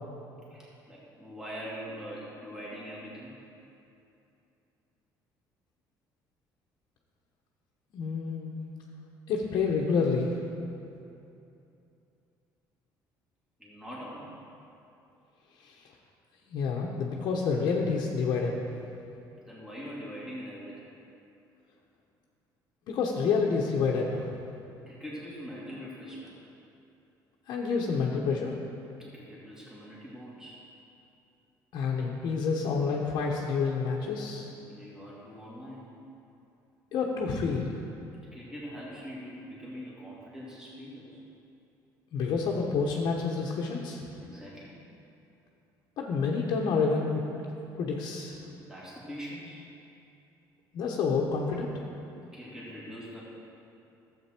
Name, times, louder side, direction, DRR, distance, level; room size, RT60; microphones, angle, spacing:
voice 1, 0.5-3.3 13.6-14.3 19.5-20.9 24.9-26.4 28.9-30.6 34.6-35.9 38.3-41.2 44.2-44.7 48.4-49.6 52.3-53.2, equal, 5° right, -7 dB, 2.2 m, -43 dB
voice 2, 7.9-8.5 9.3-10.3 15.6-15.8 16.5-18.5 22.9-24.3 27.5-28.5 31.7-34.5 36.9-37.7 42.1-44.0 46.0-47.2 47.8-48.4 50.7-51.7, left 5 dB, 60° left, -2 dB, 1.1 m, -28 dB
12.5 x 7.7 x 4.5 m, 2.8 s
cardioid pair, 140°, 8 cm